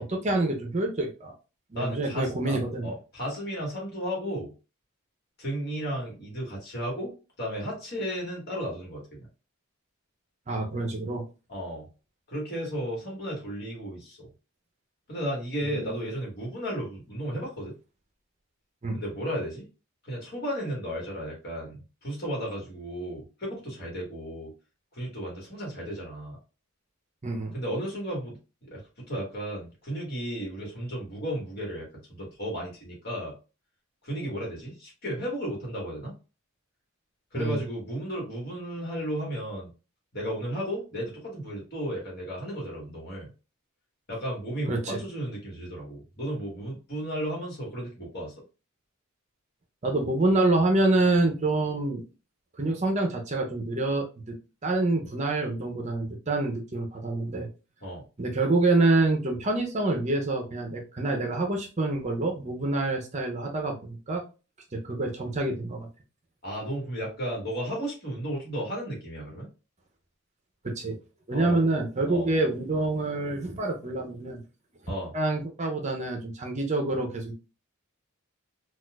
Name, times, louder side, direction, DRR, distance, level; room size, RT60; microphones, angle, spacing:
voice 1, 0.0-1.3 1.7-2.9 10.5-11.2 15.6-15.9 18.8-19.0 27.2-27.5 37.3-37.6 44.7-45.0 49.8-52.0 52.6-54.3 54.6-57.5 58.2-64.2 64.7-65.9 70.6-71.0 71.3-74.4 75.1-77.3, right 2 dB, 35° right, 2 dB, 0.6 m, -27 dB
voice 2, 1.7-4.5 5.4-7.1 7.4-9.3 11.5-11.9 12.3-14.3 15.1-17.7 18.9-19.6 20.0-24.5 24.9-26.4 27.5-28.4 28.7-28.8 29.1-33.3 34.0-36.1 37.3-39.7 40.1-43.3 44.1-48.3 57.8-58.0 66.4-69.5 71.3-71.6 72.1-72.3 74.9-75.1, equal, 50° left, -2 dB, 1.6 m, -34 dB
4.1 x 2.4 x 2.3 m, 0.32 s
head